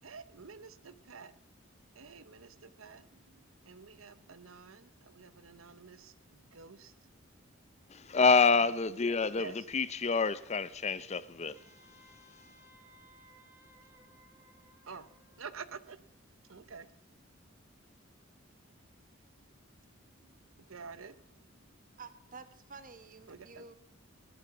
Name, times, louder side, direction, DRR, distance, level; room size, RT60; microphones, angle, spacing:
voice 1, 0.0-1.4 1.9-7.1 8.6-8.8 9.3-9.7 14.8-15.1 15.3-16.0 16.4-17.0 19.3-19.6 19.9-22.0 23.3-23.7, right 5 dB, 85° right, 0.9 m, -50 dB
voice 2, 7.9-11.6, left 4 dB, 35° left, 0.6 m, -27 dB
Wind instrument woodwind instrument, 11.5-15.8, right 1 dB, 15° right, 1.8 m, -61 dB
voice 3, 22.0-23.8, right 4 dB, 40° right, 1.6 m, -50 dB
17.5 x 12.0 x 6.1 m
head